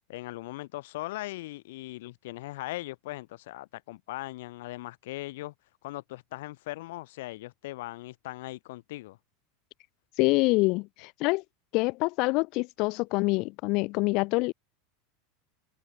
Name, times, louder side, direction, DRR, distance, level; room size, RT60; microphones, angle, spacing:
voice 1, 0.1-5.5 5.8-9.2, left 18 dB, 70° left, 2.1 m, -39 dB
voice 2, 10.2-11.4 11.7-14.5, left 25 dB, 55° left, 0.5 m, -26 dB
hypercardioid pair, 100°, 0 cm